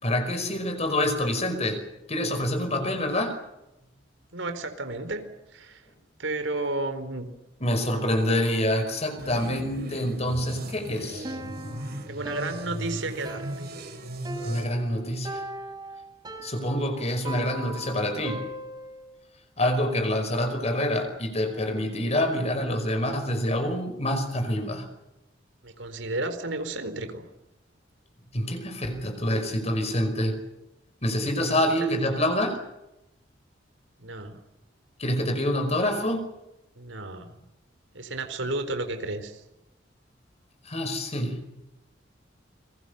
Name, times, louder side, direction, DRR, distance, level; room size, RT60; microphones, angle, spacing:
voice 1, 0.0-3.4 7.6-11.3 14.4-15.4 16.4-18.5 19.6-24.9 28.3-30.4 31.0-32.6 35.0-36.3 40.6-41.5, left 1 dB, 35° left, 7 dB, 5.2 m, -26 dB
voice 2, 4.3-5.2 5.5-5.8 6.2-7.3 12.1-13.7 25.6-27.3 31.4-31.5 34.0-34.4 36.8-37.3 37.9-39.4, right 2 dB, 85° right, 9 dB, 4.2 m, -32 dB
sound 1, 9.2-14.6, right 1 dB, 55° right, 4.7 m, -38 dB
Piano, 11.2-19.1, right 1 dB, 20° right, 5.9 m, -39 dB
29.5 x 23.0 x 6.8 m, 0.91 s
head